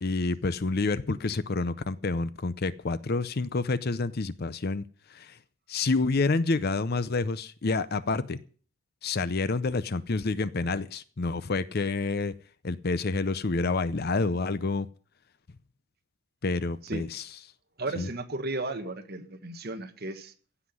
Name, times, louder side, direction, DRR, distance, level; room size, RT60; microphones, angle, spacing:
voice 1, 0.0-4.8 5.1-5.4 5.7-8.4 9.0-12.3 12.6-14.9 16.4-17.3 18.0-18.1, left 3 dB, 45° left, 15 dB, 0.6 m, -28 dB
voice 2, 17.8-20.3, right 2 dB, 45° right, 7 dB, 1.5 m, -34 dB
16.0 x 5.9 x 9.3 m, 0.44 s
head